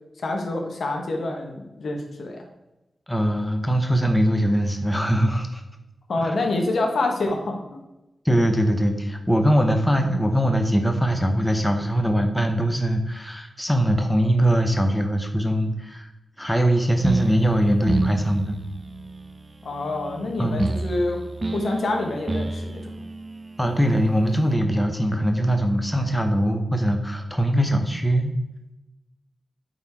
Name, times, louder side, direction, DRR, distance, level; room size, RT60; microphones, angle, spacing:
voice 1, 0.2-2.4 6.1-7.8 19.6-21.2 21.5-22.9, left 2 dB, 75° left, 2 dB, 1.4 m, -27 dB
voice 2, 3.1-5.6 6.2-6.4 8.2-16.1 16.4-18.6 20.4-20.7 23.6-28.3, equal, 5° left, 4 dB, 0.8 m, -22 dB
sound 1, 17.0-24.5, right 3 dB, 30° right, 0.5 m, -30 dB
9.2 x 4.3 x 4.6 m, 0.99 s
wide cardioid pair, 120°, 0 cm